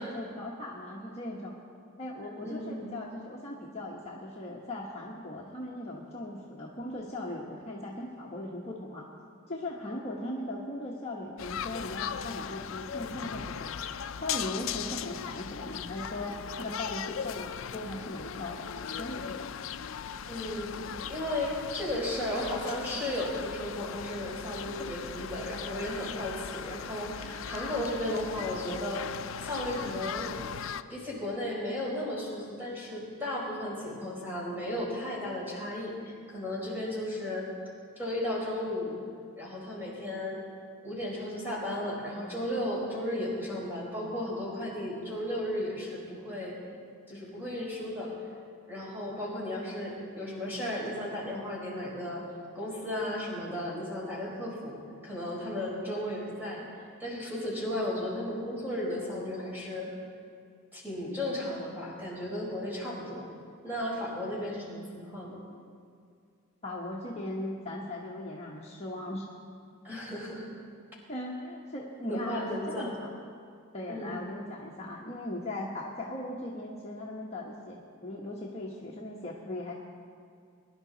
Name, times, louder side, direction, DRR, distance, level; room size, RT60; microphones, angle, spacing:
voice 1, 0.0-1.6 2.0-9.1 9.5-13.7 14.2-18.7 19.0-19.5 66.6-69.3 71.1-73.1 73.7-79.7, left 1 dB, 30° left, -3 dB, 1.2 m, -38 dB
voice 2, 2.4-2.8 20.3-20.7 21.1-29.1 29.4-30.3 30.9-37.5 38.0-39.0 39.4-40.4 40.8-46.6 47.1-48.1 48.7-52.2 52.5-56.6 57.0-59.9 60.7-63.2 63.6-65.4 69.8-70.5 72.1-72.9 73.9-74.1, left 1 dB, 10° right, -5 dB, 4.4 m, -34 dB
sound 1, 11.4-30.8, left 8 dB, 65° left, 0.4 m, -38 dB
21.5 x 11.0 x 4.0 m, 2.3 s
head